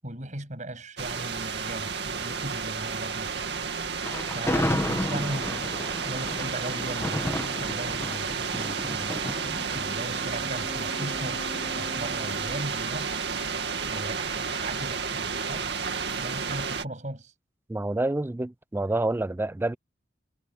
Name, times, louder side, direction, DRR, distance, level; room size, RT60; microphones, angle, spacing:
voice 1, 0.0-3.5 4.3-9.2 9.7-11.4 11.8-13.2 13.8-15.7 16.2-17.3, right 1 dB, 45° right, 7.7 m, -38 dB
sound 1, 1.0-16.8, right 5 dB, 70° right, 2.3 m, -31 dB
Thunder, 4.0-11.2, left 1 dB, 15° left, 1.4 m, -32 dB
Wind instrument woodwind instrument, 9.2-13.0, left 1 dB, 35° left, 5.1 m, -43 dB
voice 2, 17.7-19.8, right 2 dB, 10° right, 0.3 m, -28 dB
head